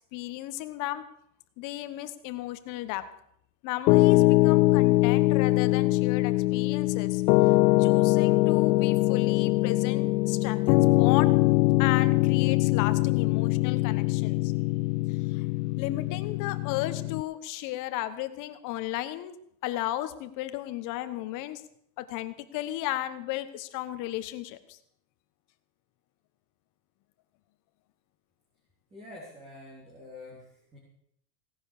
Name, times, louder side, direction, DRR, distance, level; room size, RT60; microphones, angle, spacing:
voice 1, 0.1-1.0 1.6-3.0 3.6-7.2 7.8-11.4 11.8-14.5 15.1-15.4 15.8-19.3 19.6-21.6 22.0-24.8, left 15 dB, 40° left, 11 dB, 1.2 m, -34 dB
Piano, 3.9-17.2, left 20 dB, 70° left, 0.6 m, -23 dB
voice 2, 28.9-30.8, left 2 dB, 15° right, -4 dB, 3.6 m, -47 dB
17.5 x 10.5 x 6.6 m, 0.72 s
supercardioid pair, 165°, 48 cm